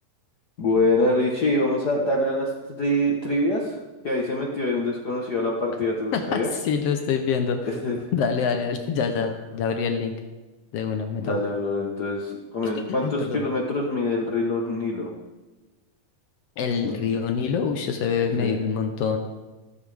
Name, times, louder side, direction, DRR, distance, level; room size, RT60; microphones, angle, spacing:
voice 1, 0.6-3.8 4.0-6.5 7.6-8.0 9.2-9.3 11.2-15.1 16.8-17.0 18.4-18.6, left 1 dB, 65° left, -2 dB, 0.9 m, -25 dB
voice 2, 6.1-7.6 8.1-10.1 10.7-11.4 13.0-13.4 16.6-19.2, left 6 dB, 85° left, 5 dB, 1.3 m, -25 dB
14.5 x 14.5 x 3.5 m, 1.2 s
omnidirectional pair, 4.0 m